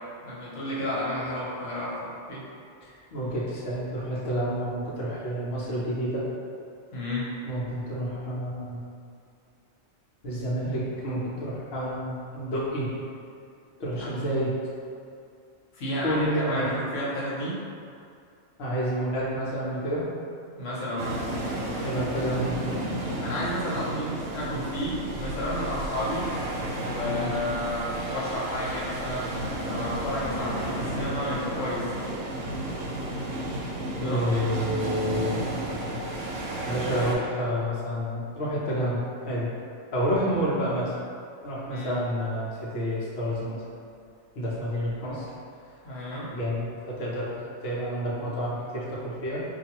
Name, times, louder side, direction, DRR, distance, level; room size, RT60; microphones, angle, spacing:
voice 1, 0.2-2.4 6.9-7.3 13.9-14.2 15.7-17.6 20.6-21.2 23.2-26.3 26.8-31.9 33.9-34.5 41.7-42.0 45.8-46.3, left 1 dB, 85° left, -7 dB, 1.2 m, -32 dB
voice 2, 2.8-6.3 7.5-8.8 10.2-12.9 13.8-14.6 16.0-16.7 18.6-20.1 21.8-22.6 27.0-27.3 34.0-35.4 36.6-39.5 39.9-40.9 41.4-43.6 44.3-45.3 46.3-49.4, equal, 55° left, -8 dB, 1.0 m, -29 dB
sound 1, 21.0-37.1, right 1 dB, 85° right, 1.0 m, -32 dB
4.6 x 2.6 x 2.9 m, 2.4 s
omnidirectional pair, 1.2 m